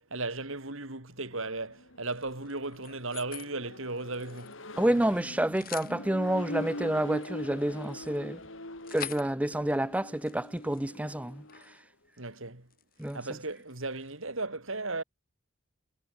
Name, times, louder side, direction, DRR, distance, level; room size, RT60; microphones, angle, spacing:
voice 1, 0.0-4.6 12.2-12.7 13.1-15.0, right 3 dB, 70° right, 3.7 m, -36 dB
Accelerating revving vroom, 1.3-11.7, left 1 dB, 65° left, 6.1 m, -43 dB
sound 1, 2.0-3.5 3.9-5.1 5.4-6.0 6.8-11.8 12.1-12.4 12.7-14.2, left 10 dB, 45° left, 2.9 m, -47 dB
voice 2, 4.8-8.4 8.9-11.4 13.0-13.2, right 1 dB, 5° right, 0.5 m, -29 dB
head